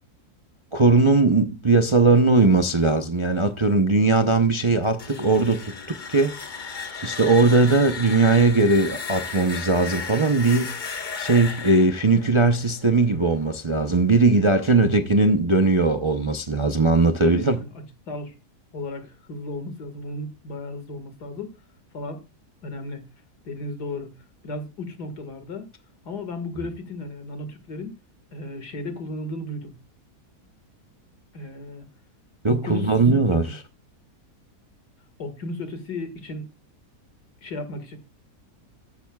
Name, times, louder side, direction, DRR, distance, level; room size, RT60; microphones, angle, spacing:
voice 1, 0.7-6.4 7.0-10.7 11.2-17.6 32.4-33.6, right 3 dB, 35° right, 0.5 m, -19 dB
sound 1, 4.8-13.6, left 5 dB, 35° left, 1.0 m, -35 dB
voice 2, 17.2-17.7 18.1-18.3 18.7-21.5 21.9-22.2 22.6-23.0 23.4-24.1 24.4-25.7 26.1-28.0 28.3-29.7 31.3-31.8 32.5-32.9 33.3-33.6 35.2-36.5 37.4-38.0, left 2 dB, 85° left, 2.4 m, -34 dB
13.5 x 10.5 x 2.3 m
omnidirectional pair, 1.7 m